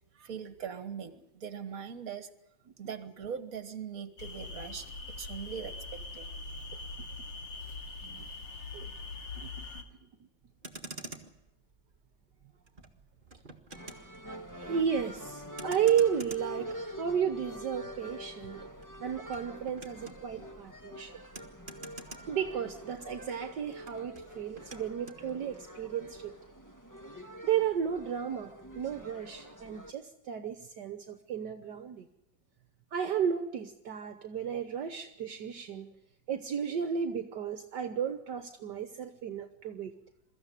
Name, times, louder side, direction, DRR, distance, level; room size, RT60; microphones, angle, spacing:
voice 1, 0.1-2.3 2.8-6.3, right 7 dB, 50° right, 1.9 m, -41 dB
sound 1, 4.2-9.8, left 3 dB, 70° left, 2.7 m, -42 dB
voice 2, 9.4-9.8 14.6-18.6 19.0-21.2 22.3-26.4 27.4-32.1 32.9-35.9 36.3-39.9, right 8 dB, 65° right, 1.6 m, -33 dB
Motor vehicle (road), 10.4-23.1 23.3-25.2, right 2 dB, 25° right, 1.8 m, -50 dB
sound 2, 13.7-29.9, equal, 10° left, 1.2 m, -46 dB
23.0 x 14.5 x 10.0 m
omnidirectional pair, 2.1 m